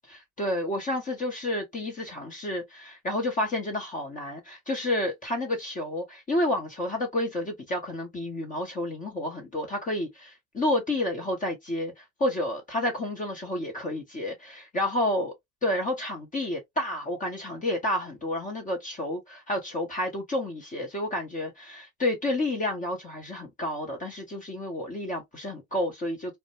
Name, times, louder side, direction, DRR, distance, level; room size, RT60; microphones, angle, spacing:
voice 1, 0.4-15.3 15.6-26.4, left 1 dB, 20° left, 0.8 m, -30 dB
2.1 x 2.0 x 3.0 m
hypercardioid pair, 80°, 36 cm